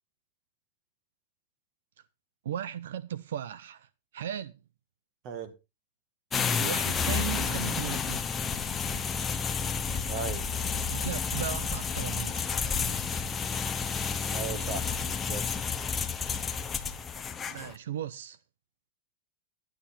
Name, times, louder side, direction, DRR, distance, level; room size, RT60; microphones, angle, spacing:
voice 1, 2.4-4.5 6.6-8.2 10.9-12.5 17.5-18.4, right 10 dB, 80° right, 0.7 m, -36 dB
sound 1, 6.3-17.7, left 6 dB, 15° left, 0.8 m, -31 dB
sound 2, 6.5-14.7, right 2 dB, 65° right, 7.9 m, -60 dB
voice 2, 10.1-10.5 14.3-15.5, right 6 dB, 35° right, 1.9 m, -37 dB
12.0 x 9.3 x 4.3 m
supercardioid pair, 165°, 0 cm